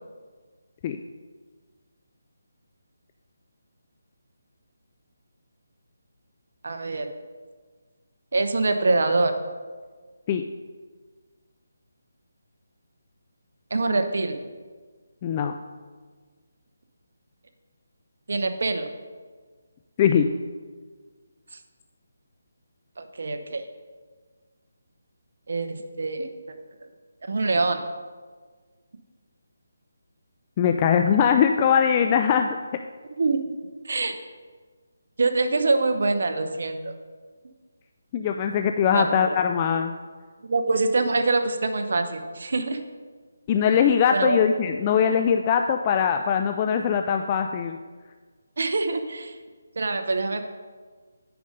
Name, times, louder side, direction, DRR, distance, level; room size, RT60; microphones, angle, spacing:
voice 1, 6.6-7.1 8.3-9.3 13.7-14.4 18.3-18.9 23.0-23.6 25.5-26.3 27.3-27.8 33.1-33.4 33.8-34.1 35.2-36.9 38.9-39.3 40.4-42.8 44.1-44.4 48.6-49.3 49.8-50.4, right 3 dB, 65° right, 7 dB, 0.8 m, -24 dB
voice 2, 15.2-15.5 20.0-20.3 30.6-32.6 38.1-39.9 43.5-47.8, left 7 dB, 25° left, 6 dB, 0.3 m, -21 dB
9.2 x 5.1 x 5.2 m, 1.5 s
figure-of-eight pair, 160°, 0 cm